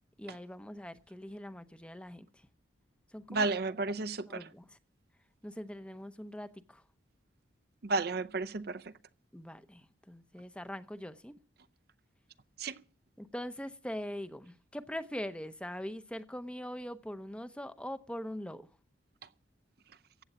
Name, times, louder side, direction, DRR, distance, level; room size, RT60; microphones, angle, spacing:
voice 1, 0.2-2.5 3.1-3.5 4.3-4.8 5.4-6.8 9.3-11.3 13.2-18.7, equal, 5° left, 0.7 m, -42 dB
voice 2, 3.3-4.4 7.8-8.9 12.6-12.8, right 3 dB, 50° right, 0.6 m, -32 dB
15.0 x 8.6 x 7.9 m
head